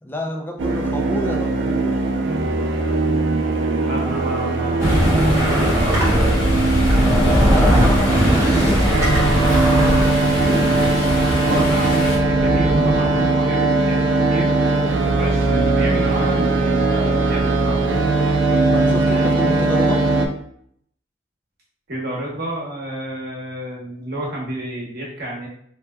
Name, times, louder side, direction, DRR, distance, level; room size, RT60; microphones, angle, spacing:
voice 1, 0.0-1.9 7.5-10.3 13.0-13.3 18.7-20.1, left 1 dB, 10° left, 2 dB, 0.4 m, -30 dB
sound 1, 0.6-20.3, right 3 dB, 80° right, 0.4 m, -19 dB
voice 2, 3.9-6.6 7.4-8.2 11.4-14.5 15.2-17.8 19.0-19.7 21.9-25.5, right 1 dB, 55° right, -3 dB, 1.0 m, -30 dB
Stream, 4.8-12.2, left 1 dB, 90° left, 1.3 m, -29 dB
sound 2, 4.8-13.2, equal, 15° right, 0.7 m, -20 dB
3.3 x 2.8 x 2.2 m, 0.67 s
head